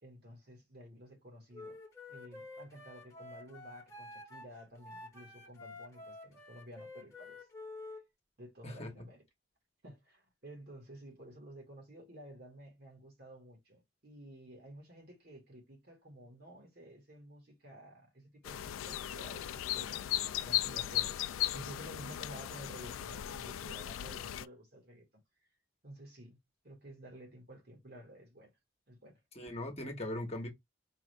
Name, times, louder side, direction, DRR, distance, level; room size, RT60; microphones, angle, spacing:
voice 1, 0.0-1.8 2.1-7.4 8.4-9.2 9.8-25.2 25.8-26.4 26.6-28.5 28.9-29.2, right 1 dB, 50° right, 1.5 m, -52 dB
Wind instrument woodwind instrument, 1.5-8.0, left 2 dB, 15° left, 1.3 m, -49 dB
sound 1, 18.4-24.5, left 13 dB, 90° left, 0.3 m, -37 dB
voice 2, 29.3-30.5, left 1 dB, 30° left, 1.2 m, -39 dB
4.7 x 2.5 x 3.3 m
head